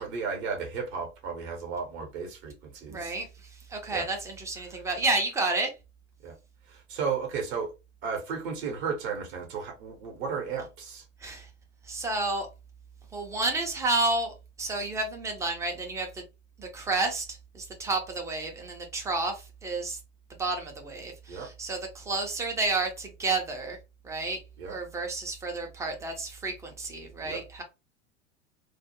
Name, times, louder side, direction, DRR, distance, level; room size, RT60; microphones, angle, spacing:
voice 1, 0.0-3.2 3.9-4.1 4.5-4.8 6.2-6.3 6.7-7.7 8.0-11.0 21.3-21.5 24.6-24.8 27.2-27.4, right 5 dB, 45° right, 0.7 m, -34 dB
voice 2, 2.9-5.7 11.2-11.5 11.8-12.5 13.1-16.2 16.6-20.0 20.4-23.8 24.0-27.6, right 3 dB, 10° right, 0.4 m, -31 dB
2.3 x 2.0 x 2.8 m
figure-of-eight pair, 85°, 37 cm